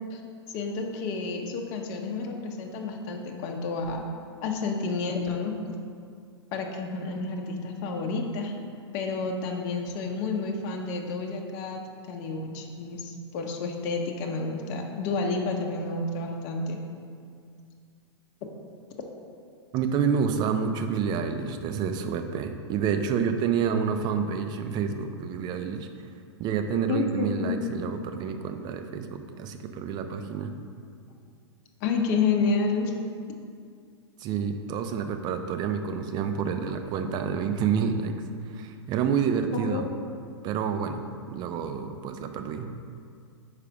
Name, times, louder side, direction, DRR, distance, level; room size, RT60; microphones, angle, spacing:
voice 1, 0.5-4.0 4.4-5.5 6.5-8.5 8.9-16.8 26.9-27.6 31.8-32.9 39.5-39.9, left 4 dB, 40° left, 2 dB, 0.8 m, -30 dB
voice 2, 19.7-25.9 26.4-30.5 34.2-39.9 40.4-42.8, right 6 dB, 30° right, 7 dB, 0.4 m, -28 dB
4.9 x 4.9 x 4.6 m, 2.3 s
hypercardioid pair, 110°, 15 cm